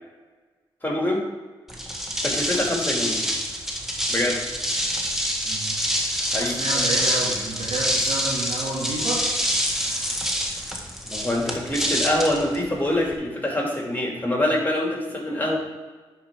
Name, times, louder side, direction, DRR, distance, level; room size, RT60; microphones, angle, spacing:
voice 1, 0.8-1.2 2.2-3.2 4.1-4.4 6.3-6.6 11.0-15.6, left 1 dB, 15° left, -1 dB, 2.5 m, -25 dB
sound 1, 1.7-13.2, equal, 5° right, 1.5 m, -26 dB
voice 2, 5.4-5.8 6.3-9.3, right 2 dB, 75° right, -4 dB, 2.3 m, -30 dB
10.0 x 4.6 x 3.7 m, 1.3 s
supercardioid pair, 45°, 11 cm